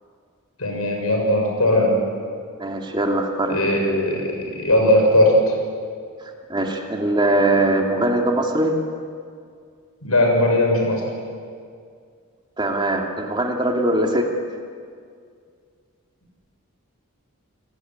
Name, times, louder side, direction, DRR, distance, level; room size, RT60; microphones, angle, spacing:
voice 1, 0.6-2.0 3.5-5.4 10.0-11.0, left 1 dB, 90° left, 2 dB, 7.1 m, -18 dB
voice 2, 2.6-3.6 6.2-8.7 12.6-14.3, right 1 dB, 20° right, 2 dB, 2.5 m, -21 dB
29.5 x 18.0 x 9.7 m, 2.2 s
head